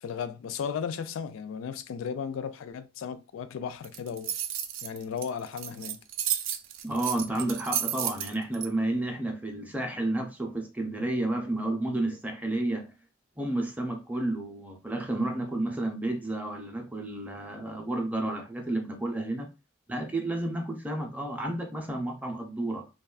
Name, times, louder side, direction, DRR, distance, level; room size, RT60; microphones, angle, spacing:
voice 1, 0.0-4.3 4.8-6.0, left 7 dB, 80° left, 0.3 m, -35 dB
sound 1, 3.8-8.7, right 10 dB, 70° right, 0.4 m, -32 dB
voice 2, 6.8-12.9 13.4-19.5 19.9-22.9, right 1 dB, 10° right, 0.5 m, -31 dB
3.3 x 2.3 x 2.3 m
head